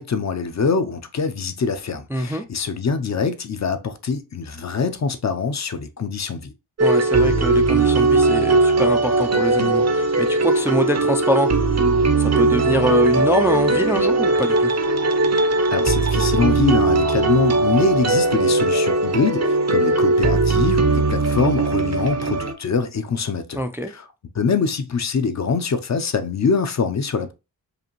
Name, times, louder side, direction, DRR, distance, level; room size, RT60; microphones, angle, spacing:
voice 1, 0.0-6.5 15.7-24.1 24.3-27.3, left 5 dB, 45° left, 0.6 m, -24 dB
voice 2, 2.1-2.4 6.8-11.7 12.2-14.7 23.5-23.9, equal, 5° right, 0.3 m, -24 dB
sound 1, 6.8-22.5, right 3 dB, 45° right, 0.6 m, -19 dB
5.0 x 2.6 x 3.0 m
wide cardioid pair, 125°, 37 cm